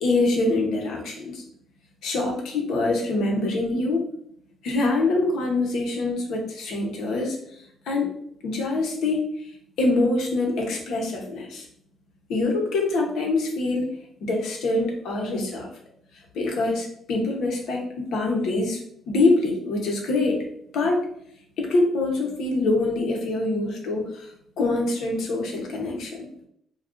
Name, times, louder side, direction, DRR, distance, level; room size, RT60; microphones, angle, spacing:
voice 1, 0.0-1.4 2.0-4.1 4.6-7.4 7.9-8.1 8.4-9.2 9.8-11.7 12.3-13.9 14.2-15.7 16.3-18.8 19.1-20.4 20.7-21.0 21.6-24.3 24.6-26.3, left 2 dB, 80° left, 0 dB, 0.8 m, -24 dB
2.4 x 2.3 x 3.7 m, 0.69 s
cardioid pair, 90°, 0 cm